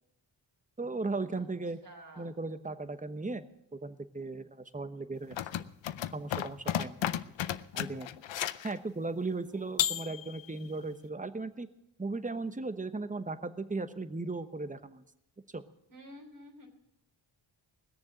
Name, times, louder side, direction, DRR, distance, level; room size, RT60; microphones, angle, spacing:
voice 1, 0.8-1.8 2.2-3.5 3.7-5.4 6.1-7.1 7.7-8.1 8.6-11.7 12.0-15.0 15.5-15.6, right 3 dB, 15° right, 11 dB, 1.0 m, -37 dB
voice 2, 1.8-2.3 9.5-9.6 15.9-16.7, equal, 60° right, -3 dB, 3.4 m, -51 dB
sound 1, 5.3-8.7 9.8-10.6, left 11 dB, 70° left, 0.7 m, -33 dB
20.0 x 7.0 x 7.8 m, 0.83 s
cardioid pair, 55°, 46 cm